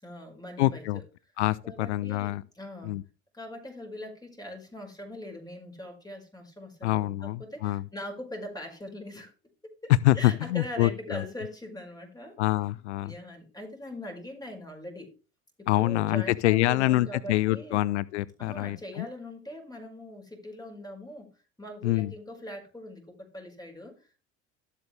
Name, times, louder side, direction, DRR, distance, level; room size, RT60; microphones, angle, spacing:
voice 1, 0.0-0.9 1.6-3.0 3.3-9.3 9.6-12.4 13.0-15.1 15.6-17.9 18.4-21.3 21.6-24.3, left 1 dB, 10° left, 5.4 m, -41 dB
voice 2, 0.6-1.0 1.4-2.4 2.8-3.0 6.8-7.8 10.0-11.3 12.4-13.1 15.7-19.1 21.8-22.1, left 16 dB, 85° left, 0.5 m, -26 dB
13.0 x 8.3 x 3.3 m
hypercardioid pair, 70°, 34 cm